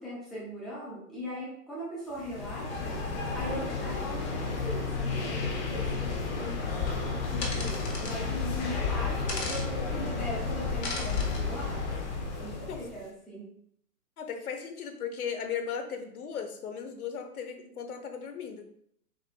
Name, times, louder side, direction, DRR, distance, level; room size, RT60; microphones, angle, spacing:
voice 1, 0.0-3.0 3.3-12.0 12.3-13.4, equal, ahead, -7 dB, 0.5 m, -40 dB
sound 1, 2.2-13.0, left 4 dB, 40° left, 1.0 m, -32 dB
sound 2, 7.4-8.2 9.3-9.7 10.8-11.4, left 3 dB, 85° left, 1.4 m, -36 dB
voice 2, 14.2-18.6, left 7 dB, 65° left, 6 dB, 1.0 m, -36 dB
4.7 x 4.7 x 2.2 m, 0.69 s
hypercardioid pair, 130°, 47 cm